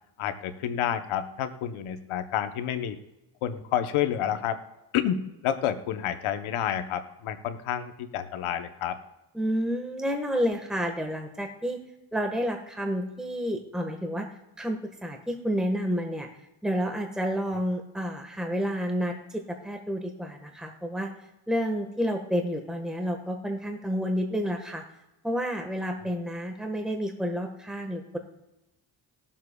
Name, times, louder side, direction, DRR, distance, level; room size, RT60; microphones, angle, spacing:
voice 1, 0.2-3.0 3.4-4.6 4.9-9.0, left 10 dB, 90° left, 9 dB, 1.0 m, -29 dB
voice 2, 9.3-11.8 12.1-14.3 14.6-16.3 16.6-21.1 21.5-24.8 25.2-28.2, equal, ahead, 4 dB, 1.4 m, -30 dB
21.0 x 7.4 x 2.3 m, 0.97 s
supercardioid pair, 55°, 48 cm